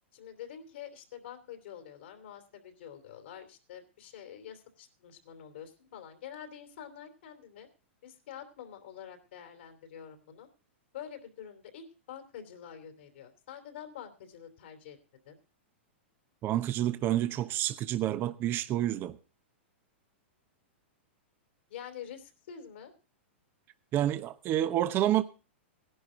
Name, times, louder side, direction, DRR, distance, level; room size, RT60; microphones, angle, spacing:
voice 1, 0.1-7.7 8.0-10.5 10.9-15.0 15.2-15.4 21.7-22.9, left 9 dB, 70° left, 3.1 m, -47 dB
voice 2, 16.4-19.2 23.9-25.2, right 12 dB, 35° right, 0.9 m, -28 dB
17.5 x 11.0 x 3.7 m
hypercardioid pair, 115°, 6 cm